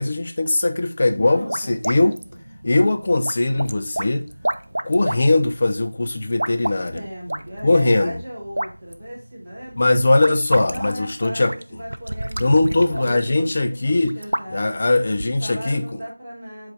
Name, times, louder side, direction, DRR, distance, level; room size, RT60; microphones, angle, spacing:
voice 1, 0.0-2.2 2.6-4.3 4.8-7.0 7.6-8.1 9.8-11.5 12.4-14.2 14.5-15.8, left 2 dB, 25° left, 0.5 m, -20 dB
voice 2, 1.1-2.1 6.9-9.8 10.7-11.4 11.7-14.8 15.4-16.7, equal, 15° right, 1.2 m, -36 dB
sound 1, 1.1-15.6, right 1 dB, 75° right, 0.6 m, -32 dB
8.1 x 3.2 x 5.2 m
figure-of-eight pair, 180°, 0 cm